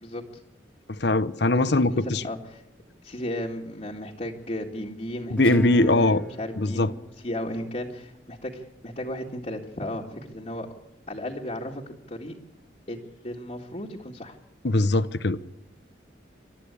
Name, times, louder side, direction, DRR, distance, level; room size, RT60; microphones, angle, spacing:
voice 1, 0.9-2.2 5.3-6.2 6.6-6.9 14.6-15.4, left 2 dB, 60° left, 0.9 m, -21 dB
voice 2, 1.5-2.6 3.0-6.9 7.2-10.7 11.1-12.4 12.9-14.4, left 1 dB, 35° left, 2.1 m, -35 dB
Guitar, 5.4-8.6, equal, 5° left, 1.6 m, -37 dB
28.5 x 13.0 x 8.4 m
head